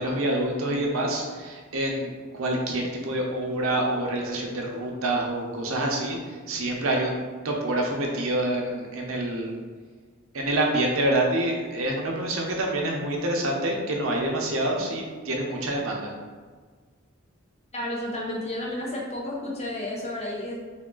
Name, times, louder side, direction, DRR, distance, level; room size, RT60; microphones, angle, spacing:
voice 1, 0.0-9.5 10.3-16.1, right 1 dB, 70° right, 0 dB, 0.7 m, -27 dB
voice 2, 17.7-20.6, left 1 dB, 30° left, -3 dB, 0.7 m, -31 dB
3.5 x 2.3 x 3.7 m, 1.5 s
head